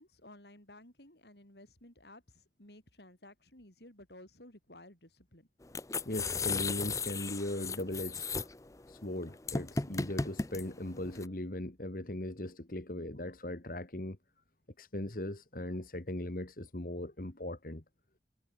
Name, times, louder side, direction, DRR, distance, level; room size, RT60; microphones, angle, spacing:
voice 1, 0.0-5.5, left 1 dB, 65° left, 6.9 m, -55 dB
sound 1, 5.6-11.3, left 4 dB, 20° left, 0.5 m, -36 dB
voice 2, 6.1-8.5 8.9-14.2 14.8-17.8, left 1 dB, 50° left, 1.8 m, -39 dB
head